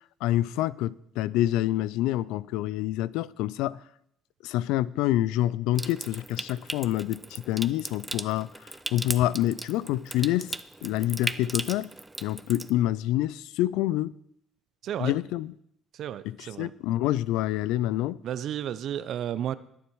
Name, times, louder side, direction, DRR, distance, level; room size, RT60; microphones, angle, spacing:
voice 1, 0.2-3.8 4.4-8.5 8.9-10.6 10.8-11.9 12.2-14.1 15.0-15.5 16.2-18.2, left 14 dB, 80° left, 0.4 m, -27 dB
Water tap faucet / Sink (filling or washing) / Trickle dribble, 5.7-12.7, right 2 dB, 15° right, 0.6 m, -37 dB
voice 2, 16.0-16.7 18.2-19.5, right 10 dB, 65° right, 0.7 m, -32 dB
20.5 x 7.1 x 4.7 m
supercardioid pair, 70°, 0 cm